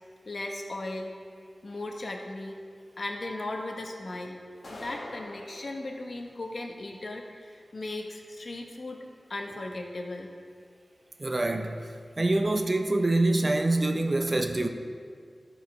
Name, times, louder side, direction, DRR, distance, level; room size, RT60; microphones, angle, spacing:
voice 1, 0.3-1.2 1.6-2.6 3.0-4.4 4.7-9.0 9.3-10.3, left 2 dB, 60° left, 2 dB, 1.2 m, -37 dB
sound 1, 4.6-5.7, left 1 dB, 80° left, 1.6 m, -43 dB
voice 2, 11.2-14.7, right 2 dB, 40° right, 5 dB, 0.8 m, -26 dB
13.5 x 5.4 x 4.8 m, 2.1 s
wide cardioid pair, 75°, 0 cm